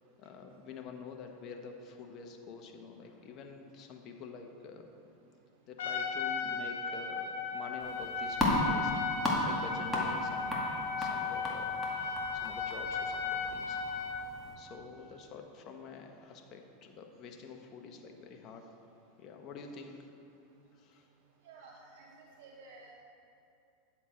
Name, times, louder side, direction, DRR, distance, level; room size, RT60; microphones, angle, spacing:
voice 1, 0.2-4.9 5.7-9.0 9.4-11.9 12.3-13.8 14.6-18.7 19.2-20.0 20.8-21.0, left 5 dB, 45° left, 4 dB, 1.0 m, -47 dB
Trumpet, 5.8-14.2, left 5 dB, 90° left, 1.4 m, -36 dB
sound 1, 7.8-14.5, left 1 dB, 10° left, 2.0 m, -35 dB
voice 2, 21.4-22.9, right 3 dB, 75° right, -1 dB, 1.0 m, -53 dB
9.8 x 7.3 x 4.4 m, 2.8 s
supercardioid pair, 115°, 0 cm